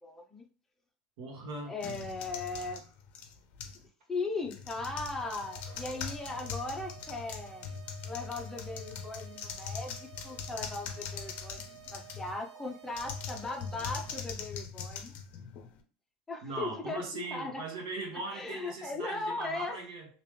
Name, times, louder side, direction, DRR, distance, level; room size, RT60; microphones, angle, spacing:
voice 1, 0.0-0.4 1.7-2.8 4.1-7.6 8.0-11.6 11.9-15.1 16.3-17.6 18.3-19.8, left 3 dB, 10° left, 1 dB, 0.7 m, -38 dB
voice 2, 1.2-1.7 16.4-20.1, right 3 dB, 65° right, -1 dB, 1.4 m, -39 dB
sound 1, 1.8-3.9 4.4-12.4 12.9-15.8, left 6 dB, 45° left, 0.6 m, -42 dB
sound 2, 5.2-14.2, right 13 dB, 85° right, 0.7 m, -53 dB
3.3 x 2.9 x 3.2 m, 0.38 s
supercardioid pair, 140°, 4 cm